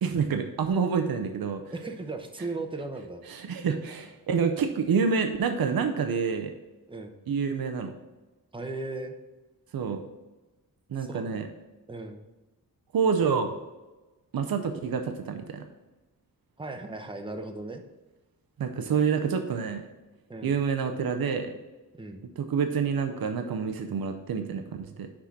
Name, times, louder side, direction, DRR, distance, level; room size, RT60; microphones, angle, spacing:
voice 1, 0.0-1.6 3.3-6.5 7.3-7.9 9.7-10.0 10.9-11.4 12.9-13.5 14.3-15.6 18.6-19.8 20.4-21.6 22.4-25.1, right 6 dB, 75° right, 6 dB, 0.7 m, -27 dB
voice 2, 1.7-3.2 6.9-7.2 8.5-9.1 11.0-11.4 11.9-12.3 16.6-17.8 20.3-20.6 22.0-22.2, right 2 dB, 15° right, 5 dB, 0.7 m, -37 dB
6.0 x 4.9 x 5.8 m, 1.1 s
wide cardioid pair, 130°, 36 cm